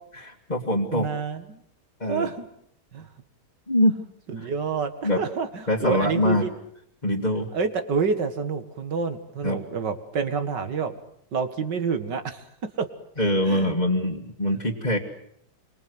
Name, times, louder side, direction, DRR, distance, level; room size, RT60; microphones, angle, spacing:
voice 1, 0.2-1.1 2.0-2.3 3.7-4.0 4.4-4.5 5.0-5.2 5.7-6.5 7.0-7.5 9.4-9.6 13.2-15.0, left 1 dB, 25° left, -2 dB, 2.3 m, -23 dB
voice 2, 0.9-1.6 2.1-2.5 2.9-3.1 4.3-6.5 7.5-11.0 11.3-12.4 12.8-12.9 13.5-13.7 14.5-14.6, right 5 dB, 90° right, 9 dB, 2.6 m, -28 dB
27.0 x 24.5 x 8.0 m, 0.70 s
omnidirectional pair, 1.8 m